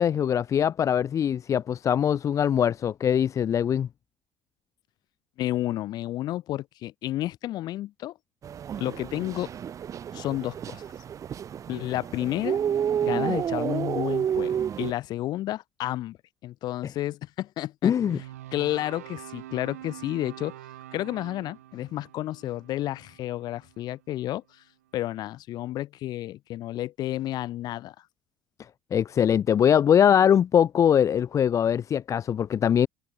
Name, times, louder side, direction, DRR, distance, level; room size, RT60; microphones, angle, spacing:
voice 1, 0.0-3.9 17.8-18.2 28.9-32.9, left 9 dB, 40° left, 0.6 m, -22 dB
voice 2, 5.4-8.1 8.8-9.5 10.1-10.8 11.7-12.6 13.0-16.2 16.4-18.2 18.5-20.6 20.9-24.6 24.9-27.9, left 14 dB, 60° left, 4.3 m, -31 dB
sound 1, 8.4-14.9, right 9 dB, 45° right, 1.0 m, -30 dB
sound 2, 18.0-24.3, right 14 dB, 85° right, 7.5 m, -45 dB
open air
hypercardioid pair, 60°, 8 cm